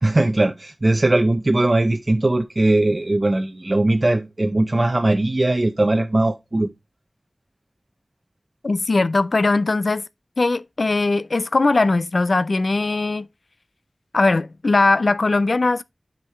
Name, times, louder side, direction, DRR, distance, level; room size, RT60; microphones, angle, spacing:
voice 1, 0.0-6.7, right 2 dB, 50° right, 0.6 m, -19 dB
voice 2, 8.6-10.0 10.4-13.3 14.1-15.8, left 3 dB, 80° left, 0.4 m, -19 dB
8.4 x 5.1 x 3.2 m
wide cardioid pair, 40°, 0 cm